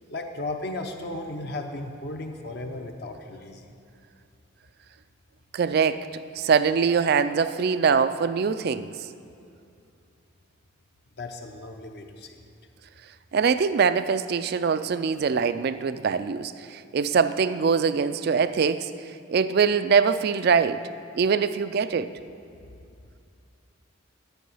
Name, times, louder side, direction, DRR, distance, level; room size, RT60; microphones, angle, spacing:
voice 1, 0.1-3.7 11.2-12.4, left 2 dB, 50° left, 4 dB, 0.6 m, -35 dB
voice 2, 5.5-6.1 6.4-9.1 13.3-20.9 21.1-22.1, right 6 dB, 45° right, 13 dB, 0.3 m, -23 dB
10.5 x 9.0 x 5.5 m, 2.5 s
head